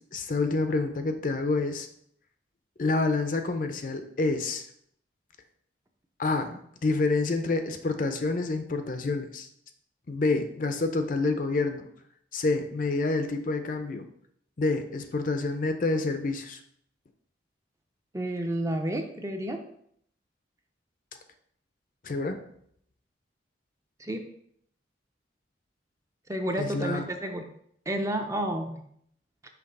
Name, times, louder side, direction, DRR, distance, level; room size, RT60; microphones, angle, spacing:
voice 1, 0.1-1.9 2.8-4.7 6.2-9.5 10.1-11.9 12.3-14.1 14.6-16.6 22.0-22.4 26.6-27.1, left 3 dB, 45° left, 7 dB, 0.5 m, -28 dB
voice 2, 18.1-19.6 24.0-24.2 26.3-27.5 27.9-28.8, right 1 dB, 15° right, 4 dB, 0.5 m, -30 dB
5.8 x 3.3 x 5.3 m, 0.68 s
head